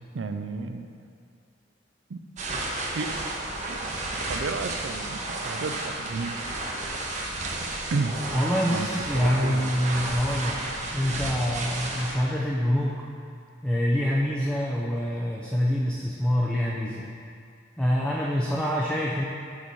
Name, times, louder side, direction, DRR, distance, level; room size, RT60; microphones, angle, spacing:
voice 1, 0.1-0.9 2.1-2.2 2.9-3.1 3.7-3.9 4.3-6.3 7.9-8.1 8.7-10.4, right 4 dB, 90° right, 7 dB, 0.5 m, -32 dB
sound 1, 2.4-12.2, right 2 dB, 40° right, 0.8 m, -32 dB
voice 2, 8.3-10.6 10.9-13.1 13.6-17.0 17.8-19.2, equal, 5° left, -4 dB, 0.5 m, -25 dB
6.4 x 4.7 x 5.4 m, 2.3 s
head